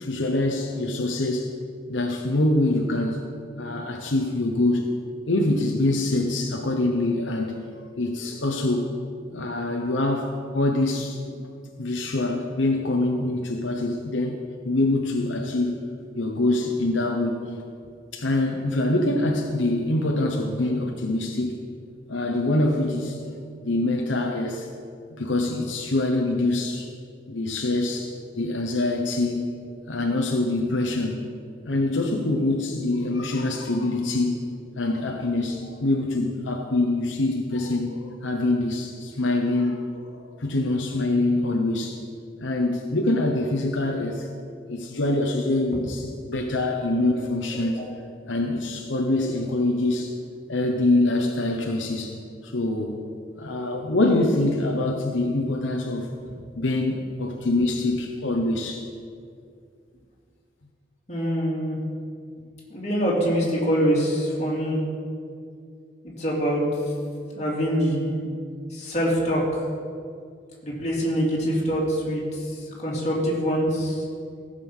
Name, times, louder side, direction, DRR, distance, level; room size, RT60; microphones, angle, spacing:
voice 1, 0.0-1.5 1.9-3.3 3.6-5.0 5.3-8.9 9.3-11.4 11.8-15.9 16.1-17.4 18.1-21.6 22.1-23.3 23.6-24.7 25.1-26.9 27.3-31.4 31.6-42.0 42.4-44.3 44.7-50.1 50.5-52.2 52.4-53.0 53.3-56.1 56.6-58.9, left 2 dB, 80° left, 1 dB, 1.0 m, -25 dB
voice 2, 61.1-61.8 62.7-64.8 66.0-66.6 67.3-68.2 68.7-69.6 70.6-74.0, equal, 35° left, -5 dB, 2.7 m, -25 dB
15.5 x 6.8 x 5.5 m, 2.3 s
head